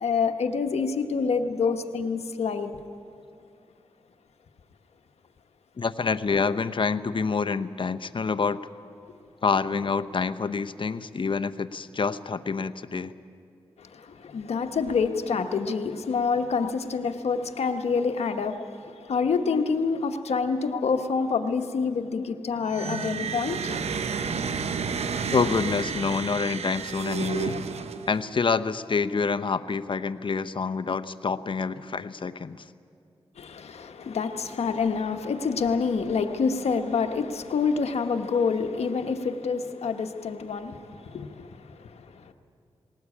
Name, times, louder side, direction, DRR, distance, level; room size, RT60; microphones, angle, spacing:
voice 1, 0.0-2.7 13.8-18.8 19.0-23.7 33.4-42.3, left 5 dB, 85° left, 6 dB, 1.1 m, -27 dB
voice 2, 5.8-8.6 9.4-13.1 15.3-15.4 16.5-16.7 19.5-19.6 20.7-20.9 22.1-22.3 22.9-23.1 25.3-27.6 28.1-32.6 34.9-35.0 38.3-38.4, left 5 dB, 50° left, 12 dB, 0.8 m, -27 dB
sound 1, 22.6-28.3, right 6 dB, 85° right, 0.9 m, -31 dB
20.5 x 18.0 x 8.5 m, 2.5 s
cardioid pair, 50°, 11 cm